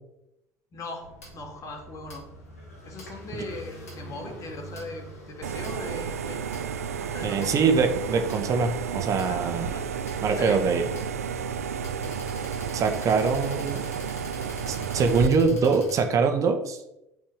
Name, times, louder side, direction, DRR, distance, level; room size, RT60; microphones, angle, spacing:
voice 1, 0.7-2.3 2.8-6.4 7.0-7.5 9.3-9.4 9.7-9.8 10.3-10.6, left 2 dB, 40° left, 3 dB, 3.4 m, -39 dB
sound 1, 1.0-16.0, right 1 dB, 80° left, 4.1 m, -45 dB
sound 2, 5.4-15.3, right 7 dB, 80° right, 0.8 m, -32 dB
voice 2, 7.2-9.7 10.2-10.9 12.7-13.8 14.7-16.8, right 5 dB, 40° right, 6 dB, 1.6 m, -23 dB
8.8 x 7.0 x 7.3 m, 0.87 s
figure-of-eight pair, 65°, 8 cm